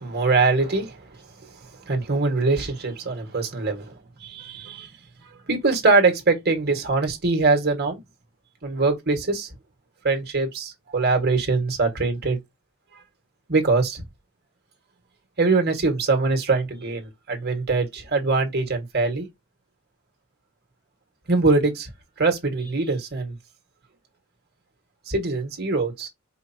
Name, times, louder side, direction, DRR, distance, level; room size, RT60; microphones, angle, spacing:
voice 1, 0.0-4.9 5.2-8.0 8.6-9.5 10.0-12.4 12.9-13.0 13.5-14.0 15.4-19.3 21.3-21.9 22.2-23.4 25.1-26.1, right 3 dB, 50° right, 1.7 m, -23 dB
5.1 x 2.7 x 2.8 m
head